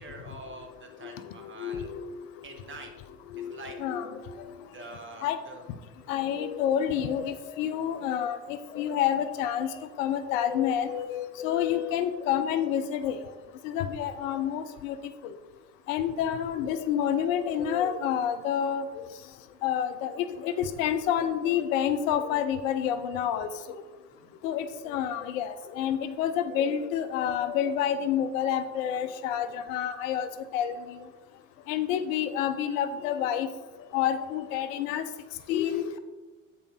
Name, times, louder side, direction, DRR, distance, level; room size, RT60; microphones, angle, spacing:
voice 1, 0.0-1.9 2.4-2.9 3.3-3.8 4.7-5.6 6.0-6.2 24.1-24.4, right 2 dB, 30° right, 3 dB, 1.7 m, -45 dB
voice 2, 1.6-2.0 3.3-4.1 4.4-4.5 5.2-5.4 6.1-8.4 8.7-9.7 10.0-13.2 13.6-15.0 15.9-18.8 19.6-23.5 24.4-30.8 31.7-33.5 33.9-35.0 35.5-36.0, left 9 dB, 65° left, 11 dB, 0.7 m, -28 dB
8.2 x 5.8 x 3.8 m, 1.2 s
hypercardioid pair, 70°, 42 cm